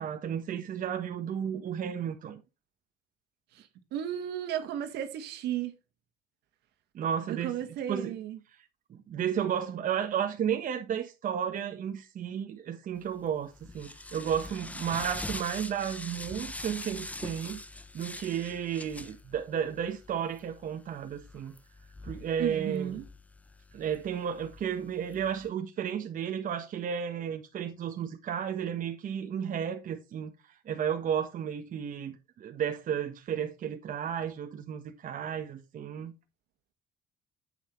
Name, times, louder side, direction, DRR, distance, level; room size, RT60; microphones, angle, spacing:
voice 1, 0.0-2.4 6.9-7.5 7.9-8.1 8.9-17.6 17.9-21.5 22.0-23.0 23.7-30.3 30.6-36.1, right 8 dB, 50° right, 1.4 m, -33 dB
voice 2, 3.5-5.8 7.3-8.4 22.4-23.1, right 10 dB, 80° right, 2.1 m, -34 dB
sound 1, 13.1-25.5, left 2 dB, 10° left, 0.9 m, -44 dB
9.1 x 8.3 x 3.3 m
cardioid pair, 110°, 17 cm